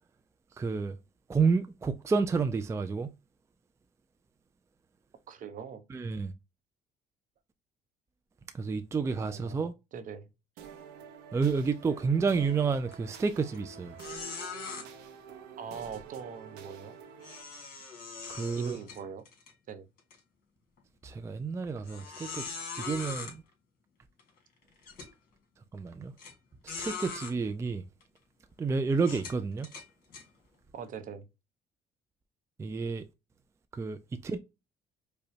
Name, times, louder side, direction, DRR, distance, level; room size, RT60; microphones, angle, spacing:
voice 1, 0.6-1.0 1.3-3.1 5.9-6.3 8.5-9.7 11.3-13.9 18.3-18.8 21.0-22.5 22.8-23.4 25.7-26.1 26.8-27.8 28.6-29.7 32.6-33.0 33.8-34.4, right 5 dB, 15° right, 0.4 m, -30 dB
voice 2, 5.3-5.8 9.0-10.3 15.6-17.0 18.6-19.2 19.7-19.9 30.7-31.3, right 6 dB, 50° right, 0.8 m, -42 dB
sound 1, 10.6-17.4, right 7 dB, 85° right, 0.8 m, -48 dB
sound 2, 12.9-13.2 13.5-13.6 14.0-14.8 17.2-19.5 20.0-20.1 20.8-20.9 21.9-23.3 24.2-24.3 24.8-25.1 26.2-26.3 26.7-27.3 28.0-28.2 29.0-30.2, left 5 dB, 60° left, 1.9 m, -41 dB
4.9 x 2.2 x 2.7 m
cardioid pair, 110°, 17 cm